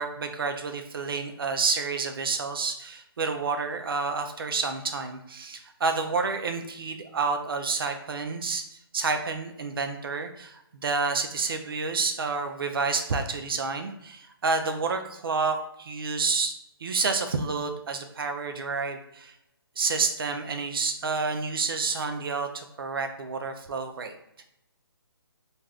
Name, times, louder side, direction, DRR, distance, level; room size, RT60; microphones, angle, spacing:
voice 1, 0.0-8.6 8.9-16.5 16.8-19.3 19.8-24.1, right 4 dB, 65° right, 6 dB, 0.5 m, -29 dB
2.5 x 2.4 x 3.3 m, 0.78 s
hypercardioid pair, 165°, 13 cm